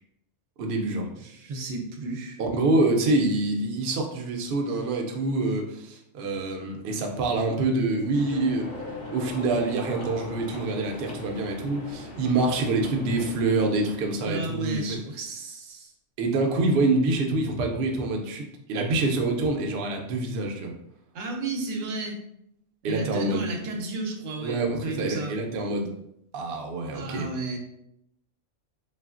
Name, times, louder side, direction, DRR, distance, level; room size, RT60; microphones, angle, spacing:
voice 1, 0.6-1.1 2.4-8.7 9.1-15.0 16.2-20.7 22.8-23.4 24.4-25.9 26.3-27.3, right 2 dB, 60° right, 2 dB, 0.6 m, -26 dB
voice 2, 1.2-2.4 14.2-15.9 21.1-22.2 22.8-25.3 26.9-27.6, right 3 dB, 85° right, 2 dB, 1.0 m, -33 dB
sound 1, 8.1-14.2, left 2 dB, 50° left, 0.6 m, -39 dB
3.1 x 2.4 x 2.3 m, 0.76 s
omnidirectional pair, 1.3 m